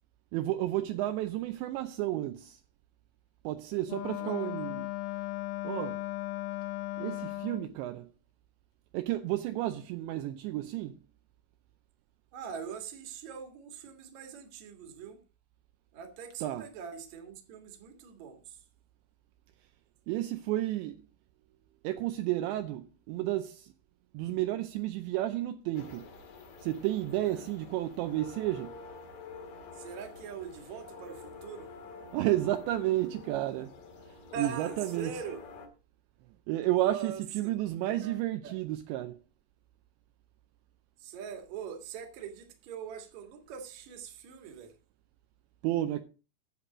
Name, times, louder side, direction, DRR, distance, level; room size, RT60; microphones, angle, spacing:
voice 1, 0.3-2.6 3.4-4.8 5.6-6.0 7.0-8.1 8.9-11.0 16.4-16.6 20.1-21.0 21.8-23.7 24.1-26.1 26.6-28.8 32.1-33.7 34.4-35.1 36.5-39.2 45.6-46.0, right 15 dB, 85° right, 2.5 m, -32 dB
Wind instrument woodwind instrument, 3.9-7.7, left 17 dB, 85° left, 3.4 m, -36 dB
voice 2, 4.2-4.5 12.3-15.2 15.9-18.6 27.2-27.5 29.7-31.7 34.3-35.4 36.8-37.5 37.9-38.6 41.0-44.8, right 7 dB, 55° right, 2.1 m, -43 dB
sound 1, 25.7-35.7, left 4 dB, 55° left, 2.3 m, -48 dB
10.5 x 8.1 x 4.9 m
omnidirectional pair, 5.8 m